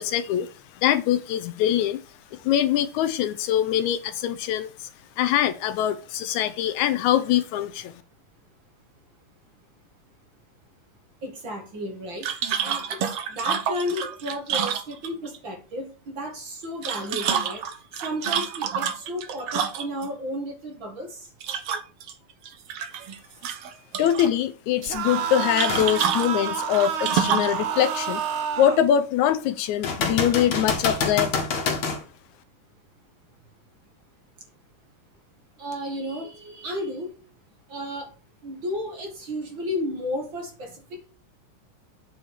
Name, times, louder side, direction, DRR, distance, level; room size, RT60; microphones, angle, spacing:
voice 1, 0.0-2.0 2.3-4.9 5.2-7.9 24.0-28.2 28.6-31.3, left 10 dB, 80° left, 1.9 m, -23 dB
voice 2, 6.3-6.7 11.2-12.3 12.6-17.6 17.9-21.3 35.6-37.1 37.7-38.1 38.4-41.1, left 1 dB, 45° right, 2.1 m, -33 dB
sound 1, 12.2-15.4 16.6-20.1 21.4-22.1 22.5-23.2 23.4-24.3 25.6-27.6, right 8 dB, 60° right, 1.7 m, -28 dB
sound 2, 24.8-28.8, right 7 dB, 80° right, 1.1 m, -29 dB
sound 3, 25.7-26.0 26.5-26.6 29.8-32.0 35.7-35.8, left 4 dB, 50° left, 2.1 m, -26 dB
8.2 x 4.5 x 7.3 m
omnidirectional pair, 3.6 m